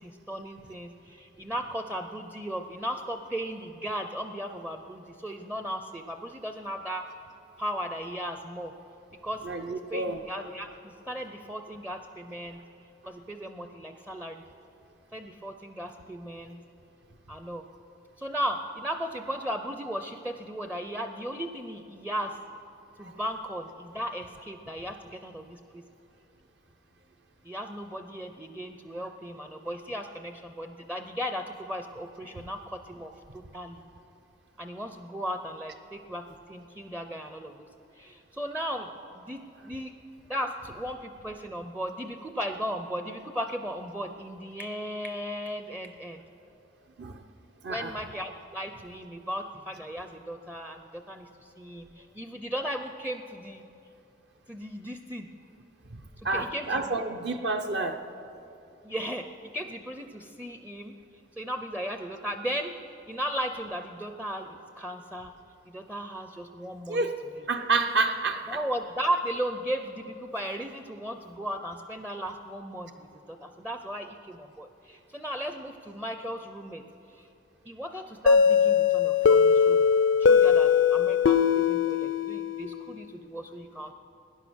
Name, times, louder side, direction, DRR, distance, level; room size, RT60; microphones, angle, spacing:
voice 1, 0.0-7.1 7.6-8.7 9.2-9.5 9.9-12.6 13.0-14.4 15.1-16.6 17.3-17.6 18.2-22.4 23.0-25.8 27.4-33.8 34.6-37.7 38.0-39.9 40.3-46.2 47.7-53.6 54.5-55.3 56.3-56.9 58.8-61.0 61.4-62.8 63.1-65.3 65.7-67.0 68.5-76.8 77.2-77.3 77.7-79.8 80.2-83.9, equal, 10° right, 6 dB, 0.4 m, -36 dB
voice 2, 9.4-10.2 13.0-13.1 16.4-16.5 23.0-23.1 29.0-29.1 32.4-32.5 47.0-47.2 47.6-47.9 55.9-58.0 66.9-67.2 67.5-68.6, right 3 dB, 60° right, 5 dB, 0.7 m, -29 dB
sound 1, 78.3-82.9, left 6 dB, 85° left, 0.5 m, -21 dB
17.5 x 10.5 x 6.2 m, 2.9 s
head